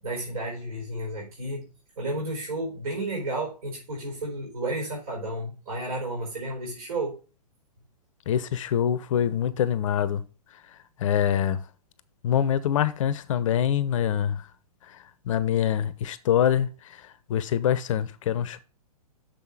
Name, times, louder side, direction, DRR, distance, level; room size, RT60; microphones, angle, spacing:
voice 1, 0.0-1.6 2.0-7.2, right 2 dB, 60° right, 4.6 m, -32 dB
voice 2, 8.3-10.2 11.0-11.6 12.2-14.5 14.9-15.0 15.3-18.6, left 9 dB, 50° left, 0.7 m, -25 dB
6.7 x 5.6 x 4.7 m
hypercardioid pair, 125°, 21 cm